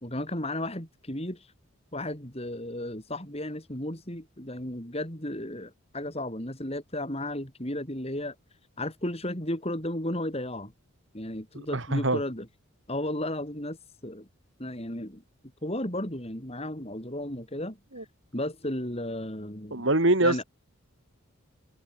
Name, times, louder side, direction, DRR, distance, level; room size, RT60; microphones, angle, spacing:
voice 1, 0.0-1.5 1.9-8.3 8.8-10.7 11.1-12.5 12.9-13.8 14.0-14.3 14.6-15.2 15.6-18.1 18.3-19.9 20.2-20.4, left 1 dB, 30° left, 4.7 m, -34 dB
voice 2, 11.7-12.2 17.9-18.0 19.7-20.4, right 2 dB, 60° right, 2.6 m, -24 dB
head